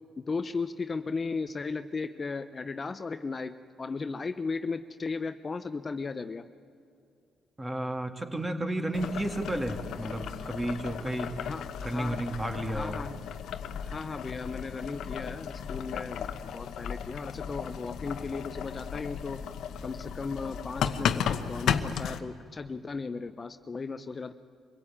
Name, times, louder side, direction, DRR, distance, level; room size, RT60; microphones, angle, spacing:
voice 1, 0.2-6.5 11.4-12.2 12.7-13.2 13.8-19.4 19.8-24.3, left 4 dB, 35° left, 10 dB, 0.7 m, -36 dB
voice 2, 7.6-11.3 11.8-13.0, right 1 dB, 15° right, 5 dB, 2.1 m, -32 dB
Boiling, 8.9-22.2, left 8 dB, 75° left, 1.0 m, -35 dB
25.0 x 17.0 x 8.7 m, 2.5 s
cardioid pair, 90°, 0 cm